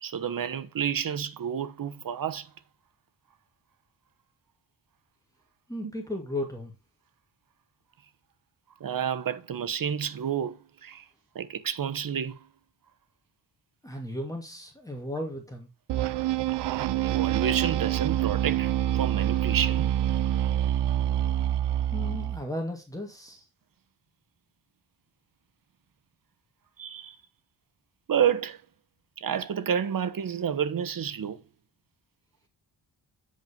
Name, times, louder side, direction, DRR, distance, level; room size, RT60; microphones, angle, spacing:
voice 1, 0.0-2.5 5.8-5.9 8.8-11.0 11.3-12.5 16.7-19.9 26.8-27.2 28.1-28.6 29.2-31.4, right 8 dB, 50° right, 1.1 m, -30 dB
voice 2, 5.7-6.7 13.8-15.7 21.9-23.4, left 1 dB, 10° left, 2.4 m, -35 dB
sound 1, 15.9-22.4, right 12 dB, 65° right, 0.6 m, -26 dB
9.3 x 5.5 x 5.2 m
cardioid pair, 90°, 44 cm